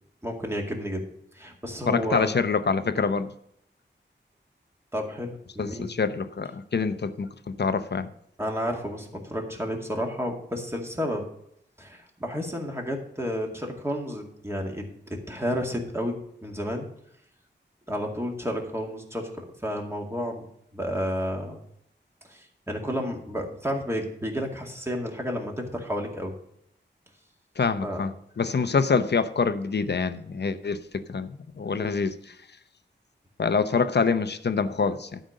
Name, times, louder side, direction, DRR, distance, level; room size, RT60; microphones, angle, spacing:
voice 1, 0.2-1.1 1.3-2.3 4.9-5.9 8.4-11.3 11.8-16.9 17.9-19.3 19.6-20.5 20.7-21.6 22.3-26.3 27.8-28.0, equal, 15° right, 1 dB, 2.1 m, -31 dB
voice 2, 1.9-3.3 5.6-8.1 27.6-30.8 31.1-32.3 33.4-35.2, left 5 dB, 60° left, 11 dB, 0.7 m, -26 dB
11.5 x 5.2 x 6.4 m, 0.73 s
wide cardioid pair, 85°, 19 cm